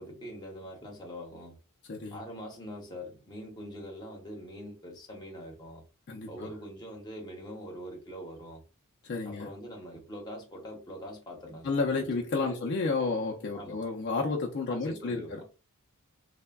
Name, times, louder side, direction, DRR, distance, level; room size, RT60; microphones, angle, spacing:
voice 1, 0.0-1.6 2.1-5.8 6.3-8.6 9.3-12.7 13.5-13.8 14.6-15.5, equal, 20° left, 0.7 m, -43 dB
voice 2, 1.9-2.2 6.1-6.5 9.0-9.5 11.6-15.4, left 3 dB, 50° left, 0.5 m, -31 dB
3.3 x 2.1 x 2.2 m
head